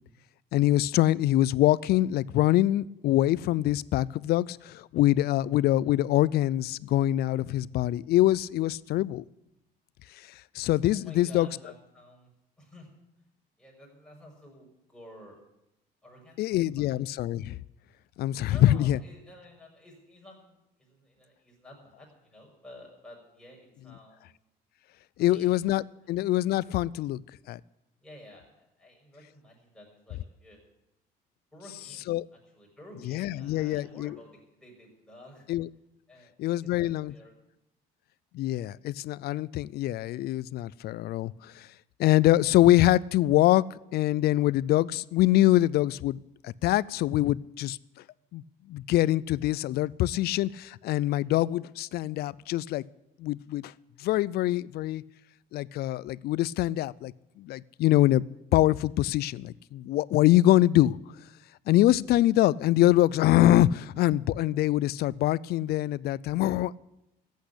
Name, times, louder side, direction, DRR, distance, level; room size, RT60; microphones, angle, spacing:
voice 1, 0.5-9.2 10.3-11.5 16.4-17.6 18.2-19.0 25.2-27.2 27.5-27.6 32.1-32.2 33.1-34.2 35.5-35.7 36.4-37.1 38.3-41.7 42.0-43.6 43.9-47.8 48.3-48.4 48.7-52.8 53.2-53.7 54.0-55.0 55.5-58.2 58.5-61.0 61.7-66.8, left 15 dB, 70° left, 22 dB, 0.4 m, -24 dB
voice 2, 10.9-12.3 12.6-12.9 13.6-15.4 16.0-16.9 18.5-24.3 25.2-25.5 28.0-30.6 31.5-35.5 36.1-37.3, left 1 dB, 5° left, -2 dB, 6.1 m, -52 dB
14.5 x 8.4 x 10.0 m, 0.87 s
cardioid pair, 110°, 17 cm